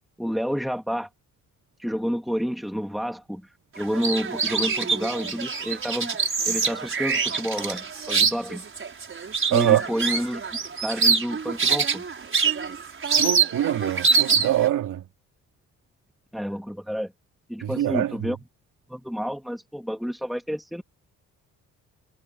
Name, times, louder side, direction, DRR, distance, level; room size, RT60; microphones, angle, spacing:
voice 1, 0.2-1.1 1.8-3.4 3.8-6.2 6.4-8.6 9.5-10.4 10.8-12.0 16.3-17.1 17.5-18.4 18.9-20.8, equal, ahead, 2.6 m, -29 dB
sound 1, 3.8-14.7, right 5 dB, 40° right, 6.0 m, -25 dB
voice 2, 9.5-9.8 13.0-15.0 17.6-18.3, right 12 dB, 75° right, 2.9 m, -24 dB
cardioid pair, 80°, 32 cm